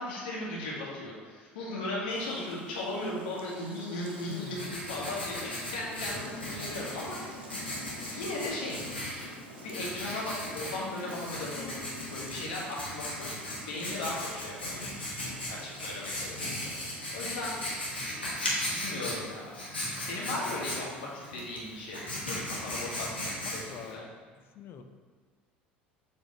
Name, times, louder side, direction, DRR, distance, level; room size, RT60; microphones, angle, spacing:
voice 1, 0.0-7.5 8.1-8.8 9.6-14.8 15.5-16.8 17.1-17.5 18.7-19.6 20.0-24.0, left 2 dB, 65° left, -4 dB, 1.7 m, -37 dB
Mariehamn ferryboatwakewashingontoshorelinerocks, 2.1-18.1, right 3 dB, 75° right, 0.9 m, -51 dB
Writing, 4.1-23.9, left 1 dB, 85° left, 1.4 m, -37 dB
voice 2, 4.3-4.7 23.4-24.8, left 6 dB, 45° left, 6 dB, 0.6 m, -45 dB
7.1 x 3.6 x 4.5 m, 1.5 s
figure-of-eight pair, 65°, 6 cm